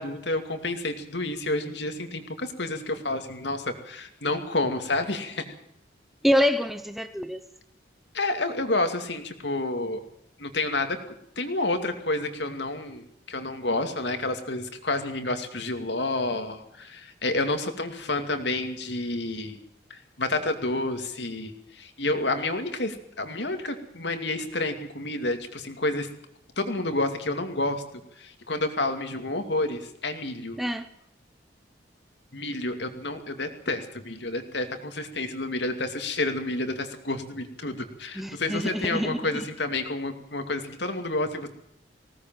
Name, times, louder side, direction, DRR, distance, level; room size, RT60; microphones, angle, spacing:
voice 1, 0.0-5.4 8.1-10.0 10.4-11.0 11.4-19.6 19.9-26.1 26.6-27.8 28.2-30.6 32.3-41.5, left 2 dB, 70° left, 2.6 m, -29 dB
voice 2, 6.2-7.4 30.6-30.9 38.2-39.4, equal, ahead, 0.8 m, -26 dB
20.0 x 17.5 x 7.7 m
head